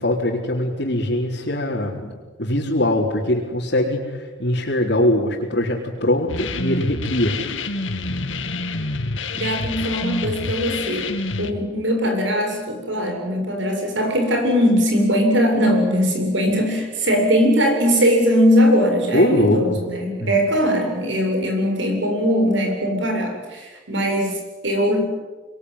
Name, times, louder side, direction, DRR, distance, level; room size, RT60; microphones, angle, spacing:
voice 1, 0.0-2.1 2.4-7.4 19.1-19.7 20.2-20.3, left 1 dB, 55° left, -4 dB, 4.1 m, -21 dB
sound 1, 6.3-11.5, left 3 dB, 75° left, 2.1 m, -27 dB
voice 2, 9.3-11.1 11.4-25.0, equal, 70° right, 3 dB, 7.7 m, -20 dB
26.0 x 22.5 x 9.8 m, 1.3 s
head